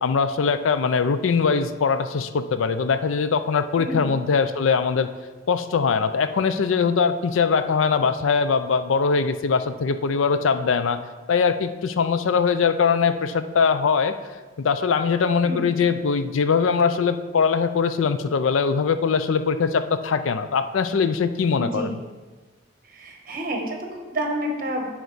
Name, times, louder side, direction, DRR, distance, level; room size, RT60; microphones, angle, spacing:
voice 1, 0.0-5.1 5.5-11.0 11.3-14.1 14.6-22.0, left 5 dB, 80° left, 11 dB, 0.4 m, -22 dB
voice 2, 3.7-4.1 15.4-15.8 21.6-22.0 22.8-24.9, right 1 dB, 45° right, 2 dB, 1.1 m, -29 dB
9.4 x 4.5 x 4.0 m, 1.3 s
head